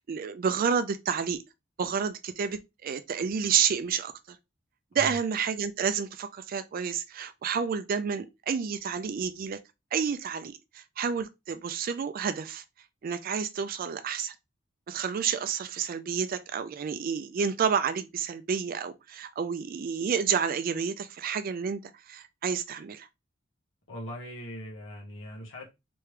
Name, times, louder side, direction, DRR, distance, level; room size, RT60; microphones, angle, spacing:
voice 1, 0.0-1.4 1.8-4.4 4.9-9.6 9.9-12.6 13.0-14.3 14.9-21.8 22.1-23.1, right 6 dB, 50° right, 0.3 m, -30 dB
voice 2, 23.9-25.7, left 1 dB, 85° left, 1.4 m, -40 dB
3.4 x 3.2 x 3.2 m
head